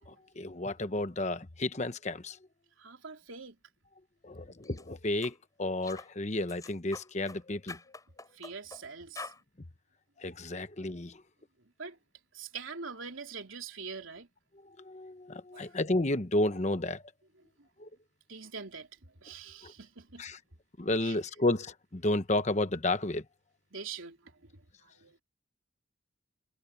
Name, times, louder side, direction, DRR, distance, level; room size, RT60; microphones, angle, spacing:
voice 1, 0.1-2.4 4.2-7.8 10.2-11.2 14.7-17.0 17.8-17.9 19.6-19.7 20.2-20.4 20.8-23.2, left 2 dB, 35° left, 1.0 m, -32 dB
voice 2, 2.8-3.6 8.3-9.3 11.6-12.0 12.3-14.3 15.5-15.8 17.6-17.7 18.3-20.2 21.0-21.2 23.7-25.2, right 5 dB, 75° right, 3.4 m, -44 dB
sound 1, 4.6-4.8 5.2-5.4 5.8-6.1 6.5-7.4 7.7-8.8 9.1-9.4, left 3 dB, 15° left, 7.1 m, -45 dB
head